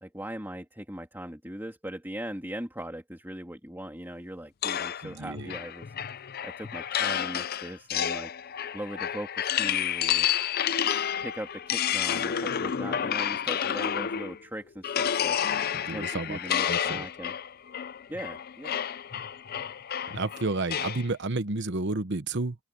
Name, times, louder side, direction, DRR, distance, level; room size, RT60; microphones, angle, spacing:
voice 1, 0.0-5.9 6.4-8.3 8.7-10.3 11.2-15.4 15.9-17.3 18.1-18.8, right 1 dB, 10° right, 3.1 m, -39 dB
sound 1, 4.6-14.4 14.8-21.1, left 9 dB, 40° left, 0.4 m, -30 dB
voice 2, 5.0-5.5 15.7-16.4 16.6-17.1 20.1-22.6, right 3 dB, 50° right, 1.0 m, -31 dB
open air
head